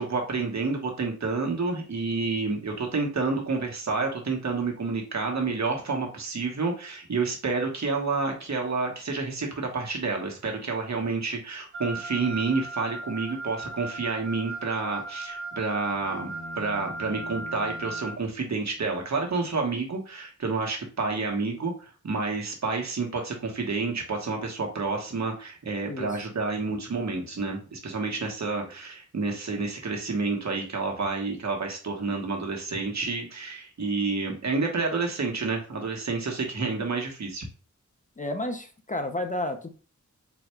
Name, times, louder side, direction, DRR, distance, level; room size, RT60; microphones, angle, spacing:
voice 1, 0.0-16.3 16.6-37.5, right 3 dB, 65° right, 1 dB, 1.1 m, -29 dB
Wind instrument woodwind instrument, 11.7-18.2, right 2 dB, 45° right, 0.6 m, -37 dB
sound 1, 15.9-18.2, left 1 dB, 60° left, 0.8 m, -45 dB
voice 2, 38.2-39.7, left 1 dB, 25° left, 6 dB, 0.5 m, -31 dB
4.0 x 2.2 x 4.3 m, 0.36 s
wide cardioid pair, 115°, 30 cm